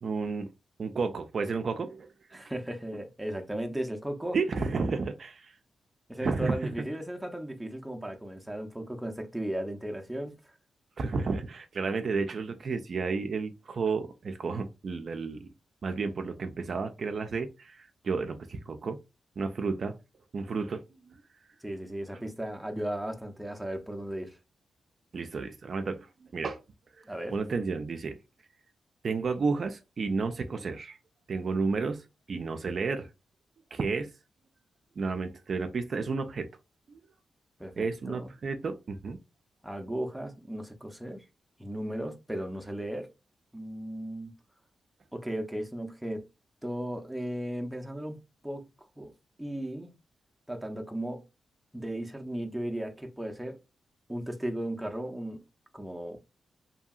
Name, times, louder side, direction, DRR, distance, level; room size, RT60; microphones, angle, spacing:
voice 1, 0.0-0.5 0.8-2.1 4.3-5.6 6.2-6.5 11.0-15.5 15.8-19.0 19.4-20.0 20.3-21.1 25.1-26.6 27.3-28.2 29.0-31.0 31.3-32.0 32.3-33.1 33.7-34.1 35.0-36.5 36.9-37.0 37.8-39.2, right 4 dB, 55° right, 0.4 m, -32 dB
voice 2, 2.3-4.4 6.1-10.3 21.6-24.4 27.1-27.4 37.6-38.3 39.6-41.2 41.6-43.1 43.5-44.3 45.1-46.3 46.6-48.2 48.4-48.7 49.0-49.1 49.4-49.9 50.5-51.2 51.7-53.6 54.1-55.4 55.7-56.2, right 1 dB, 5° right, 0.5 m, -36 dB
2.7 x 2.7 x 2.3 m
cardioid pair, 85°, 0 cm